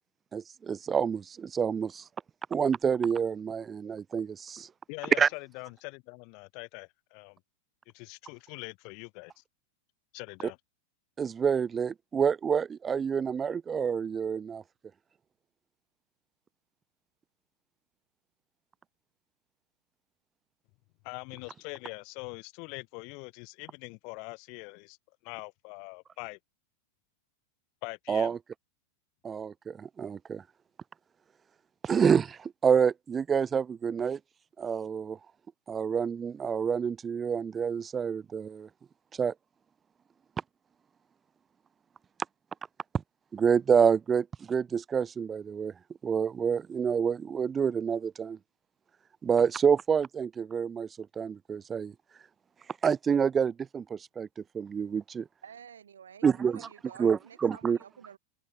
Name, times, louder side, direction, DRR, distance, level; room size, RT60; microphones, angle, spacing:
voice 1, 0.3-2.0 2.5-4.7 5.2-5.3 11.2-14.6 28.1-28.4 29.2-30.4 31.8-34.2 34.6-35.2 35.7-38.7 39.2-39.3 43.3-45.7 46.0-48.4 49.2-51.9 52.8-54.3 54.5-55.3 56.2-56.7 57.0-57.8, right 6 dB, 20° right, 0.4 m, -28 dB
voice 2, 4.9-7.4 7.9-9.4 10.1-10.6 21.0-25.0 25.2-26.4 27.8-28.4, left 34 dB, 45° left, 1.0 m, -43 dB
voice 3, 55.4-58.2, right 8 dB, 70° right, 5.0 m, -50 dB
figure-of-eight pair, 90°, 0 cm